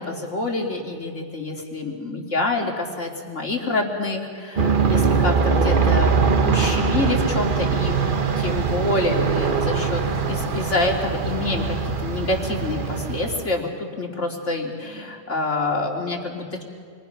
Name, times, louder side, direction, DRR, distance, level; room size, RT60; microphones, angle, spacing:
voice 1, 0.0-6.1 6.4-8.0 8.4-16.6, left 2 dB, 75° left, 0 dB, 3.2 m, -27 dB
Aircraft, 4.6-13.6, right 5 dB, 45° right, 1.2 m, -22 dB
29.5 x 23.0 x 5.8 m, 2.1 s
omnidirectional pair, 1.2 m